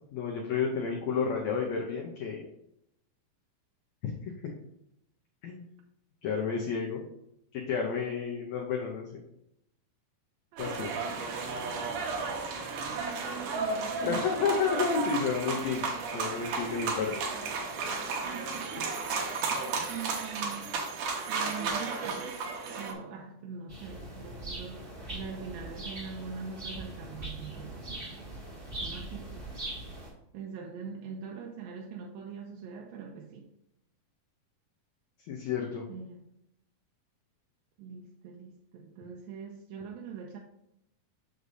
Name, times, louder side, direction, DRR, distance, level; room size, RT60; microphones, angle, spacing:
voice 1, 0.1-2.4 4.0-4.1 4.4-4.5 5.4-5.6 6.2-7.0 7.5-9.1 10.6-10.9 14.0-15.8 16.1-17.1 35.3-35.8, left 5 dB, 80° left, -1 dB, 1.6 m, -31 dB
voice 2, 10.5-11.3 12.0-14.3 18.2-18.9 19.2-20.7 21.3-28.3 28.8-29.5 30.3-33.5 35.9-36.3 37.8-40.4, right 6 dB, 90° right, 0 dB, 2.4 m, -43 dB
sound 1, 10.6-22.9, right 4 dB, 75° right, 2.4 m, -33 dB
sound 2, 23.7-30.1, right 1 dB, 25° right, 1.2 m, -41 dB
6.6 x 6.3 x 2.7 m, 0.80 s
omnidirectional pair, 4.2 m